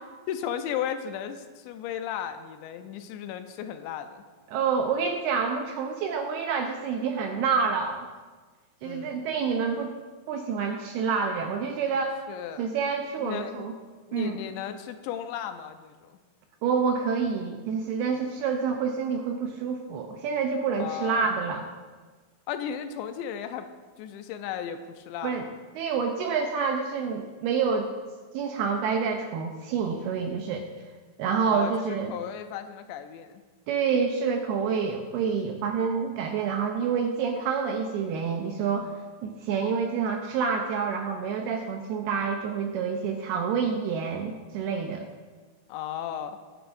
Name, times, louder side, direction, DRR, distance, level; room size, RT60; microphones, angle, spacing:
voice 1, 0.3-4.2 8.8-9.2 12.3-12.7 13.2-13.7 14.1-16.2 20.8-21.3 22.5-23.7 24.0-25.5 31.5-33.4 45.7-46.4, left 9 dB, 80° left, 8 dB, 2.8 m, -35 dB
voice 2, 4.5-8.1 8.8-9.9 10.3-12.2 12.6-13.7 14.1-14.4 16.6-21.7 25.2-25.5 25.8-27.9 28.3-30.7 31.2-32.1 33.7-38.9 39.2-45.1, right 6 dB, 85° right, 3 dB, 2.3 m, -28 dB
21.5 x 9.1 x 2.6 m, 1.4 s
omnidirectional pair, 5.4 m